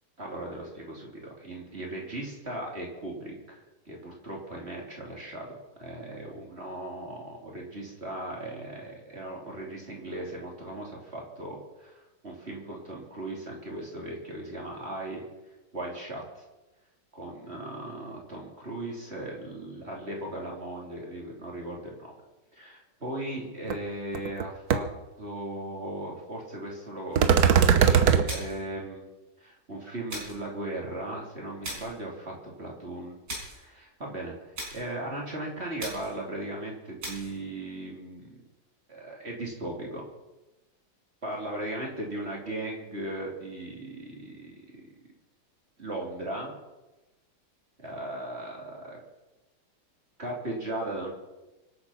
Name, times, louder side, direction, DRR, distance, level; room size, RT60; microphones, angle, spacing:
voice 1, 0.2-15.2 15.7-16.4 17.1-22.1 22.5-24.9 25.2-29.0 29.4-33.2 33.5-34.3 34.7-38.4 38.9-40.1 41.2-44.6 45.8-46.5 47.8-49.0 50.2-51.1, right 1 dB, 35° right, -2 dB, 3.4 m, -37 dB
sound 1, 23.7-23.8 24.1-24.4 24.7-24.8 27.2-28.2, right 7 dB, 60° right, 1.4 m, -19 dB
sound 2, 28.3-28.7 30.1-30.5 31.6-32.0 33.3-33.6 34.5-34.9 35.8-36.2 37.0-37.4, right 1 dB, 75° right, 5.7 m, -38 dB
25.0 x 8.6 x 5.8 m, 1.1 s
omnidirectional pair, 1.9 m